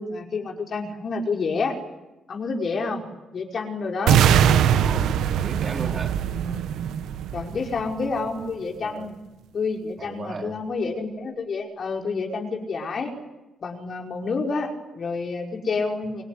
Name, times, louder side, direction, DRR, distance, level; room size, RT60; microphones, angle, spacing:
voice 1, 0.0-1.8 2.3-3.0 3.3-4.2 6.4-6.6 7.3-9.1 9.5-13.1 13.6-16.2, left 4 dB, 50° left, 2 dB, 5.5 m, -29 dB
sound 1, 4.1-8.1, right 9 dB, 85° right, 1.5 m, -21 dB
voice 2, 4.8-6.2 8.8-9.1 10.0-10.6, right 4 dB, 40° right, 3 dB, 3.7 m, -35 dB
28.0 x 21.0 x 9.9 m, 1.0 s
cardioid pair, 90°, 0 cm